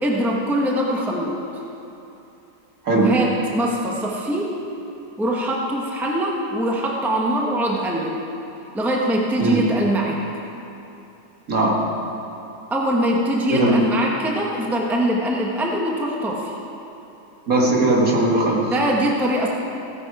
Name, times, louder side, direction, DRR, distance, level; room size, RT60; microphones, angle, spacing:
voice 1, 0.0-1.4 2.9-4.5 5.2-8.2 8.7-10.2 12.7-16.5 18.7-19.5, right 1 dB, ahead, -2 dB, 1.1 m, -22 dB
voice 2, 17.5-18.6, right 2 dB, 60° right, -3 dB, 2.5 m, -18 dB
16.5 x 9.8 x 4.8 m, 2.9 s
omnidirectional pair, 1.7 m